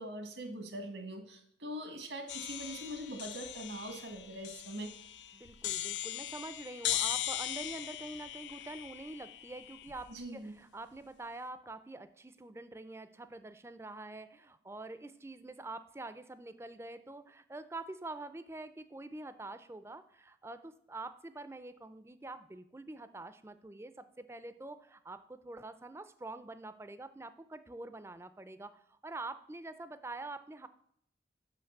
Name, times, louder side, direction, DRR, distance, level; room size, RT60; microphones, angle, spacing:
voice 1, 0.0-4.9 10.1-10.5, right 1 dB, 90° right, 5 dB, 1.6 m, -42 dB
sound 1, 2.3-10.2, left 12 dB, 80° left, 0.4 m, -39 dB
voice 2, 5.3-30.7, right 2 dB, 15° right, 12 dB, 0.4 m, -46 dB
5.8 x 5.8 x 6.6 m, 0.69 s
head